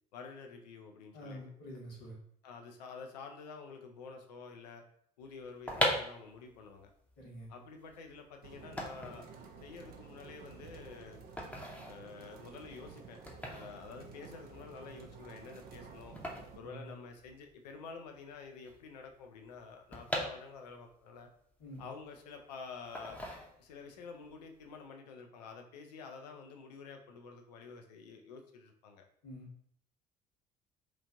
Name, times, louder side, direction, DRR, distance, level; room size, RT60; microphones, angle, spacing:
voice 1, 0.1-1.4 2.4-4.8 5.2-6.9 7.5-9.3 9.6-11.2 11.9-16.2 16.5-21.3 21.8-23.2 23.6-29.0, left 5 dB, 75° left, 4 dB, 0.4 m, -49 dB
voice 2, 1.1-2.2 7.2-7.5 16.6-16.9 21.6-21.8 29.2-29.5, equal, 60° left, -3 dB, 1.3 m, -47 dB
sound 1, 5.4-17.5 17.8-17.9 18.1-20.9 21.4-22.4 22.9-23.9 24.3-24.6, equal, 5° left, 0.7 m, -40 dB
sound 2, 8.4-16.6, right 5 dB, 50° right, 0.4 m, -52 dB
3.0 x 2.4 x 2.4 m, 0.65 s
figure-of-eight pair, 55°, 21 cm